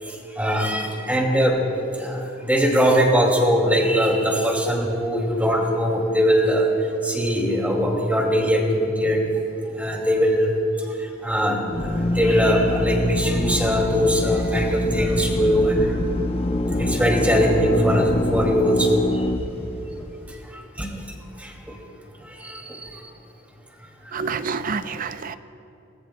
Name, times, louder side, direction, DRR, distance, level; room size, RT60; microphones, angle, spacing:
voice 1, 0.0-1.6 1.9-6.7 7.0-9.3 9.7-10.5 10.9-16.0 16.8-19.3 20.3-21.8 22.2-23.1 24.0-24.5, equal, 10° right, 0 dB, 2.3 m, -22 dB
Drill, 11.7-20.3, left 1 dB, 30° left, 0.7 m, -25 dB
voice 2, 24.1-25.4, right 5 dB, 45° right, 12 dB, 0.5 m, -28 dB
28.5 x 20.0 x 2.2 m, 2.9 s
head